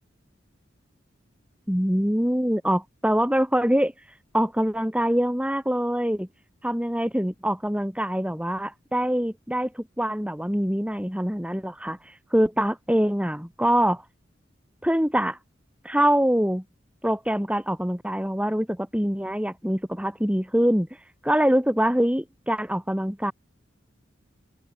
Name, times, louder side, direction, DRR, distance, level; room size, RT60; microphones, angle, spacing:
voice 1, 1.7-3.9 4.3-6.3 6.6-14.0 14.8-15.4 15.8-16.6 17.0-20.9 21.2-23.3, equal, 5° right, 5.3 m, -24 dB
open air
head